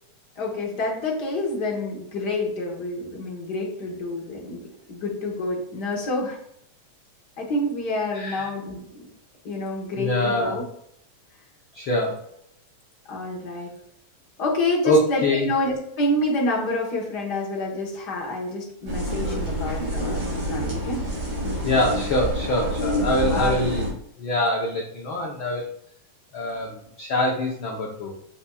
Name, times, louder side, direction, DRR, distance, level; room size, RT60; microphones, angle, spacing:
voice 1, 0.4-6.4 7.4-9.0 9.4-10.6 13.1-13.7 14.4-21.0 23.2-23.6, left 2 dB, 50° left, -1 dB, 1.2 m, -28 dB
voice 2, 8.1-8.5 10.0-10.6 11.7-12.2 14.8-15.5 21.6-25.7 26.3-28.1, left 1 dB, 70° left, -1 dB, 1.2 m, -24 dB
sound 1, 18.9-23.9, equal, 45° right, 3.0 m, -27 dB
8.0 x 5.6 x 2.3 m, 0.71 s
omnidirectional pair, 3.5 m